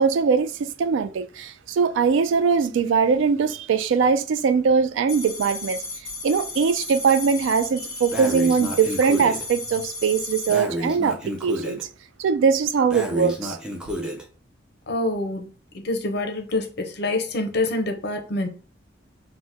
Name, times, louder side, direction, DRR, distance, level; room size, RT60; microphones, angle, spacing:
voice 1, 0.0-5.8 6.2-11.8 12.2-13.6, right 5 dB, 85° right, 0.3 m, -21 dB
sound 1, 5.1-10.6, left 3 dB, 15° left, 1.1 m, -34 dB
Breathing, 8.1-9.4 10.5-11.8 12.9-14.2, equal, 5° right, 0.4 m, -30 dB
voice 2, 14.9-15.5 15.7-18.5, left 2 dB, 60° left, 0.5 m, -26 dB
2.8 x 2.1 x 3.3 m
head